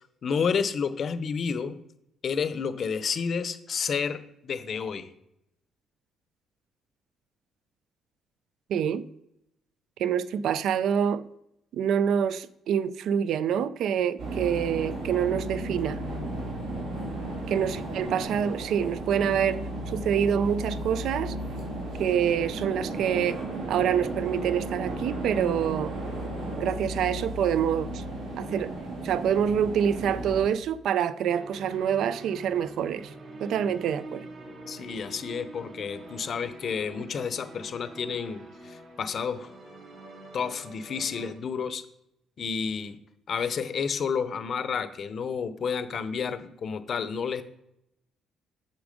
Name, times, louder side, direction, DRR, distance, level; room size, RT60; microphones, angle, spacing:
voice 1, 0.2-1.8 2.2-4.2 4.4-5.1 34.7-39.5 40.3-41.8 42.4-43.0 43.3-47.4, left 6 dB, 40° left, 0.6 m, -30 dB
voice 2, 8.7-9.1 10.0-11.2 11.7-16.0 17.5-19.6 19.9-21.3 22.0-23.4 23.7-26.0 26.6-28.0 28.4-28.7 29.0-33.1 33.4-34.2, right 8 dB, 65° right, 0.4 m, -26 dB
sound 1, 14.2-30.5, right 1 dB, 80° right, 2.7 m, -34 dB
sound 2, 31.2-41.3, right 2 dB, 45° right, 2.9 m, -45 dB
8.3 x 6.0 x 5.1 m
cardioid pair, 155°, 0 cm